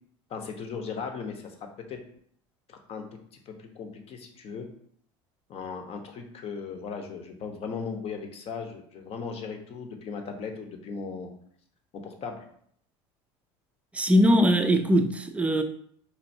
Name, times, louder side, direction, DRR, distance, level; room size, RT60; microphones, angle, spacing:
voice 1, 0.3-2.0 2.7-3.0 3.5-4.7 5.5-11.3 11.9-12.4, left 5 dB, 45° left, 0.8 m, -37 dB
voice 2, 13.9-15.6, equal, 10° right, 0.4 m, -21 dB
4.4 x 2.6 x 2.6 m
hypercardioid pair, 85°, 14 cm